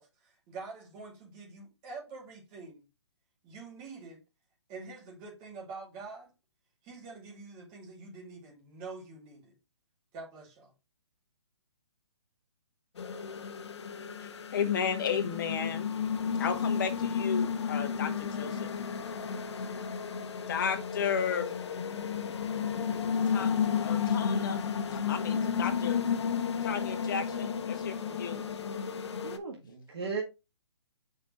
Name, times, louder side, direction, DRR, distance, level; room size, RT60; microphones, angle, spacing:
voice 1, 0.0-2.9 3.4-4.2 4.7-6.3 6.8-9.5 10.1-10.7, right 4 dB, 25° right, 2.3 m, -46 dB
sound 1, 13.0-29.4, left 7 dB, 70° left, 1.0 m, -32 dB
voice 2, 14.2-15.9 16.4-18.7 20.5-21.5 23.3-23.5 23.8-26.0 26.6-28.4, left 7 dB, 45° left, 1.4 m, -34 dB
voice 3, 29.2-30.2, right 5 dB, 60° right, 1.7 m, -36 dB
6.6 x 5.1 x 3.1 m
hypercardioid pair, 155°, 15 cm